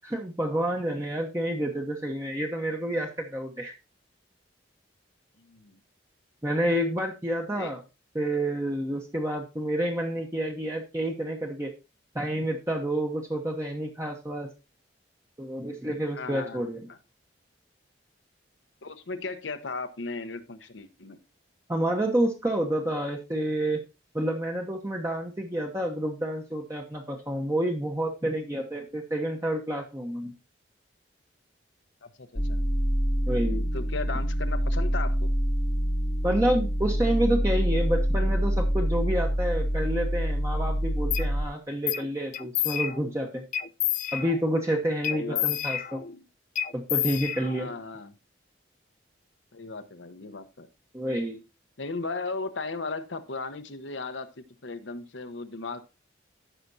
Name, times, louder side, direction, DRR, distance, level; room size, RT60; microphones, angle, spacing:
voice 1, 0.0-3.7 6.4-7.8 8.1-11.7 12.1-14.5 15.4-16.8 21.7-23.8 24.1-30.3 33.3-33.6 36.2-43.4 44.1-46.0 46.7-47.7 50.9-51.4, right 1 dB, 15° right, 1 dB, 1.0 m, -29 dB
voice 2, 5.5-5.8 7.5-7.7 16.1-16.6 16.9-17.0 18.8-21.2 32.0-32.6 33.7-35.3 45.1-45.5 47.6-48.1 49.5-50.7 51.8-55.8, left 3 dB, 85° left, 9 dB, 1.1 m, -36 dB
sound 1, 32.4-41.5, equal, 20° left, 0.9 m, -26 dB
sound 2, 41.1-41.3 41.9-42.1 42.3-43.1 43.5-44.5 45.0-46.2 46.6-47.8, left 11 dB, 45° left, 0.4 m, -30 dB
14.5 x 5.9 x 2.6 m, 0.27 s
head